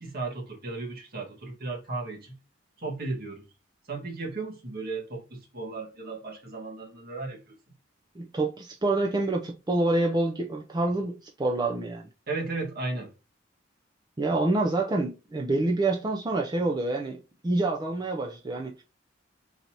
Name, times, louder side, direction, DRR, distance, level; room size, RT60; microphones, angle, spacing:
voice 1, 0.0-2.4 2.8-3.5 3.9-7.6 12.3-13.1, right 3 dB, 55° right, 1.6 m, -35 dB
voice 2, 8.2-12.1 14.2-18.8, right 2 dB, 20° right, 0.5 m, -27 dB
4.0 x 2.8 x 4.5 m
head